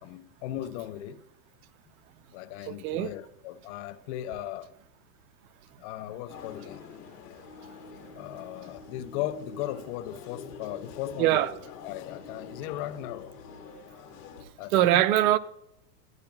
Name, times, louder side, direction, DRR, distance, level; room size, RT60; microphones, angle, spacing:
voice 1, 0.0-1.2 2.3-4.7 5.8-6.8 8.1-11.5 11.8-13.4 14.6-15.0, left 13 dB, 50° left, 0.6 m, -37 dB
voice 2, 2.7-3.1 11.2-11.5 14.7-15.4, right 13 dB, 65° right, 0.6 m, -22 dB
sound 1, 6.3-14.4, left 5 dB, 75° left, 1.4 m, -46 dB
12.0 x 9.6 x 2.3 m
supercardioid pair, 140°, 47 cm